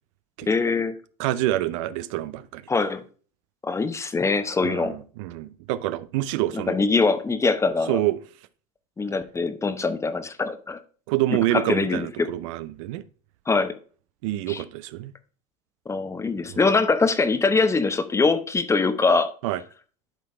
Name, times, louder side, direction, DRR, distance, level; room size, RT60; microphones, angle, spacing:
voice 1, 0.5-0.9 2.7-3.0 3.6-4.9 6.5-8.0 9.0-10.8 11.5-12.3 13.5-13.8 14.5-14.6 15.9-19.3, left 4 dB, 15° left, 0.8 m, -23 dB
voice 2, 1.2-2.6 4.6-6.8 7.9-8.2 11.1-13.0 14.2-15.1 16.5-16.6 19.4-19.6, right 15 dB, 75° right, 0.5 m, -27 dB
11.5 x 3.9 x 3.3 m
supercardioid pair, 95°, 17 cm